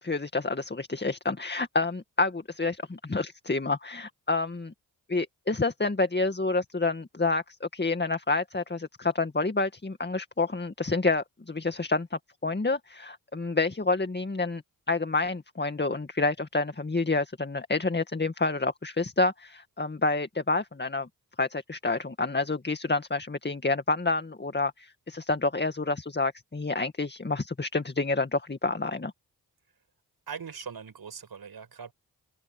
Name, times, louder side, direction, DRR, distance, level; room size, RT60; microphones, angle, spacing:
voice 1, 0.0-4.7 5.1-14.6 14.9-21.1 21.4-29.1, left 3 dB, 25° left, 2.1 m, -28 dB
voice 2, 30.3-31.9, right 6 dB, 60° right, 6.6 m, -40 dB
supercardioid pair, 40°, 40 cm